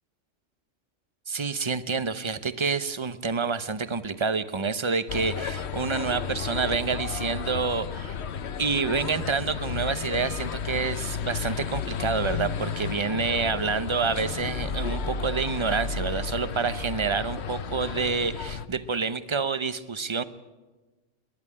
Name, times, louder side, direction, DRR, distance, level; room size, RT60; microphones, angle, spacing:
voice 1, 1.3-8.2 8.6-20.2, right 5 dB, 30° right, 12 dB, 0.7 m, -28 dB
sound 1, 5.1-18.7, left 6 dB, 60° left, 1.1 m, -33 dB
29.0 x 11.0 x 9.9 m, 1.2 s
omnidirectional pair, 1.3 m